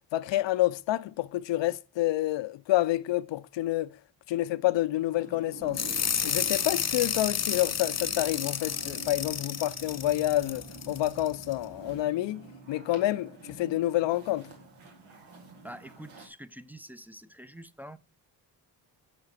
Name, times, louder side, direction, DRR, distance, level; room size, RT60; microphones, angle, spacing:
voice 1, 0.1-3.9 4.3-5.8 6.2-14.5, left 15 dB, 70° left, 0.6 m, -28 dB
sound 1, 5.1-16.3, right 2 dB, 90° right, 1.8 m, -47 dB
sound 2, 5.7-11.5, left 7 dB, 35° left, 0.8 m, -31 dB
voice 2, 15.6-18.0, right 1 dB, 5° right, 0.5 m, -46 dB
6.5 x 5.9 x 6.4 m
cardioid pair, 60°, 46 cm